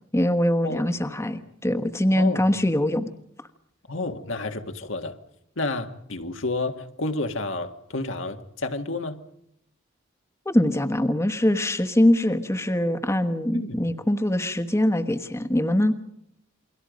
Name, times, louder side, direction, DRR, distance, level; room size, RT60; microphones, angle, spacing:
voice 1, 0.1-3.1 10.4-15.9, left 1 dB, 15° left, 9 dB, 1.2 m, -23 dB
voice 2, 2.1-2.5 3.9-5.2 5.6-9.2 13.5-13.8, left 2 dB, 80° left, 6 dB, 1.9 m, -30 dB
29.0 x 23.0 x 5.2 m, 0.72 s
head